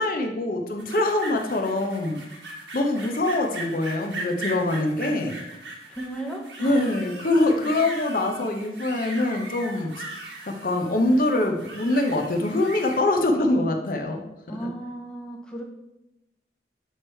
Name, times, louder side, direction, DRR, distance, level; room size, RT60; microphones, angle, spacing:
voice 1, 0.0-2.2 2.7-5.4 6.6-10.0 10.5-14.2 14.6-14.7, left 2 dB, 50° left, 3 dB, 0.6 m, -24 dB
sound 1, 0.8-13.0, right 2 dB, 90° right, 1.4 m, -39 dB
voice 2, 5.9-6.8 7.6-7.7 14.5-15.6, right 1 dB, 5° left, -1 dB, 0.7 m, -35 dB
8.0 x 3.1 x 4.3 m, 0.93 s
head